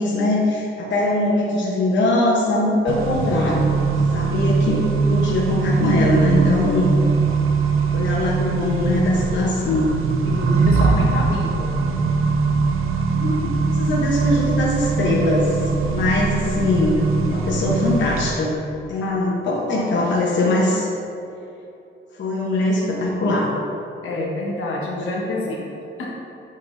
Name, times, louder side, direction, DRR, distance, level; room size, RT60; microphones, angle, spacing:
voice 1, 0.0-3.8 4.1-6.9 7.9-10.0 13.1-18.6 18.9-20.9 22.2-23.5, left 1 dB, 60° left, -4 dB, 0.9 m, -21 dB
Accelerating revving vroom, 2.9-18.3, right 4 dB, 80° right, 0.6 m, -21 dB
voice 2, 10.3-11.7 19.0-19.3 24.0-25.7 26.0-26.1, left 2 dB, 80° left, -3 dB, 1.3 m, -27 dB
8.8 x 5.9 x 2.6 m, 2.9 s
cardioid pair, 130°, 21 cm